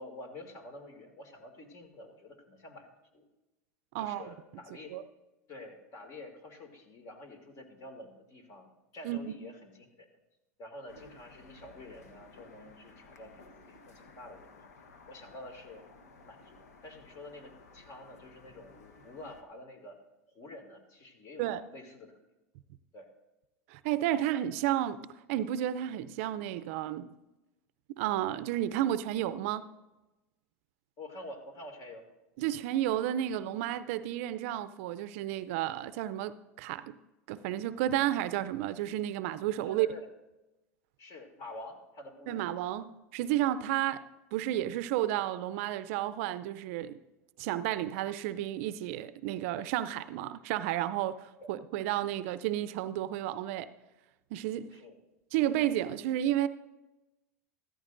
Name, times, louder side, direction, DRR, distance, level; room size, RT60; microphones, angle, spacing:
voice 1, 0.0-2.9 3.1-3.2 4.0-5.0 5.5-10.1 10.6-14.6 15.1-15.9 16.2-20.0 20.3-22.2 22.9-23.1 31.0-32.1 39.7-40.1 41.0-42.4 51.4-51.5 54.7-55.0, left 1 dB, 40° left, 2.4 m, -48 dB
sound 1, 10.9-19.4, left 3 dB, 90° left, 1.1 m, -56 dB
voice 2, 23.7-27.1 28.0-29.7 32.4-37.0 37.3-39.9 42.3-44.1 44.3-47.0 47.4-53.7 54.3-54.7 55.3-56.5, right 12 dB, 65° right, 0.5 m, -32 dB
14.0 x 14.0 x 2.6 m
hypercardioid pair, 105°, 8 cm